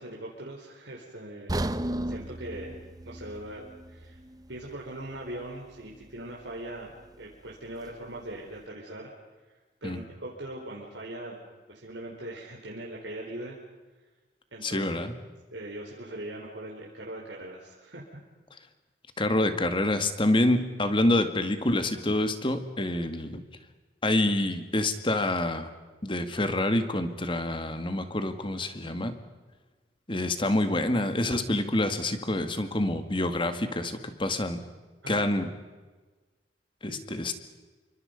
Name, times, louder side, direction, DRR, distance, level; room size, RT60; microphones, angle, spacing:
voice 1, 0.0-1.8 2.1-2.8 3.0-4.1 4.5-6.9 7.2-9.1 9.8-11.4 11.7-13.6 14.5-14.9 15.5-18.0 35.0-35.2 36.9-37.0, right 1 dB, 70° right, -3 dB, 4.5 m, -40 dB
sound 1, 1.5-5.6 5.9-6.1 6.7-6.8, right 1 dB, 20° right, 0.8 m, -35 dB
voice 2, 14.6-15.1 19.2-23.4 24.0-25.7 26.0-29.2 30.1-34.6 35.1-35.5 36.8-37.3, left 1 dB, 25° left, 8 dB, 2.0 m, -27 dB
28.5 x 25.0 x 5.4 m, 1.3 s
head